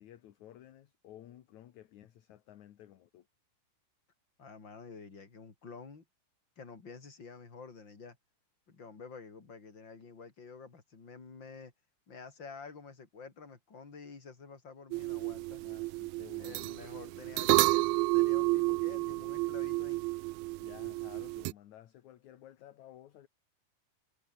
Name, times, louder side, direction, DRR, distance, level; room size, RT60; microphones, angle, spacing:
voice 1, 0.0-3.3 15.6-16.8 20.6-23.3, left 12 dB, 60° left, 2.4 m, -54 dB
voice 2, 4.4-6.0 6.6-8.2 8.7-11.7 12.1-15.6 16.4-20.0, left 5 dB, 30° left, 4.2 m, -49 dB
sound 1, 14.9-21.5, right 22 dB, 85° right, 2.3 m, -31 dB
omnidirectional pair, 4.3 m